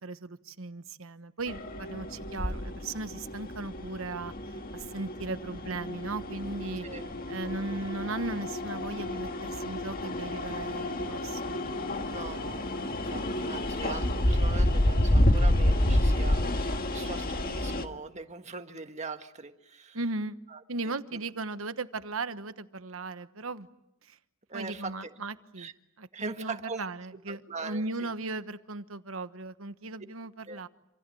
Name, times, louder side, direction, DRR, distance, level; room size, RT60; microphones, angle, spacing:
voice 1, 0.0-6.9 7.3-11.6 19.9-20.4 20.7-23.7 24.0-24.2 24.5-25.7 26.0-30.7, right 3 dB, 80° right, 11 dB, 1.2 m, -37 dB
sound 1, 1.5-17.8, left 1 dB, 45° left, 1.8 m, -29 dB
voice 2, 12.0-20.0 20.5-21.2 24.5-25.1 25.6-25.7 26.1-26.9 27.3-28.1 30.5-30.6, right 4 dB, 35° right, 7 dB, 1.7 m, -41 dB
28.0 x 27.0 x 7.8 m, 0.83 s
head